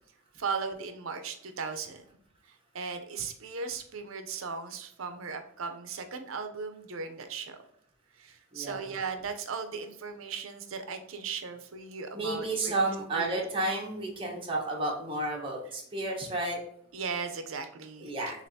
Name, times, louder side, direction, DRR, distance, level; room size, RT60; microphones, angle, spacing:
voice 1, 0.4-2.0 2.5-7.6 8.2-12.7 13.1-13.4 16.9-18.1, right 5 dB, 75° right, 7 dB, 0.6 m, -37 dB
voice 2, 8.5-8.9 12.1-16.6 18.0-18.5, right 2 dB, 25° right, -2 dB, 1.0 m, -32 dB
6.5 x 2.5 x 2.7 m, 0.70 s
head